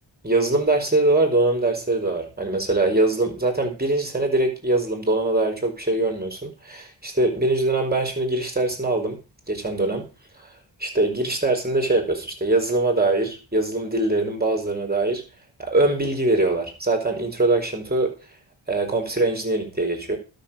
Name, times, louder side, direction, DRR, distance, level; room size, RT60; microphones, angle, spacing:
voice 1, 0.2-9.2 9.5-10.1 10.8-15.2 15.6-18.2 18.7-20.2, right 2 dB, 20° right, 3 dB, 5.1 m, -22 dB
12.0 x 6.9 x 5.9 m, 0.33 s
wide cardioid pair, 65°, 46 cm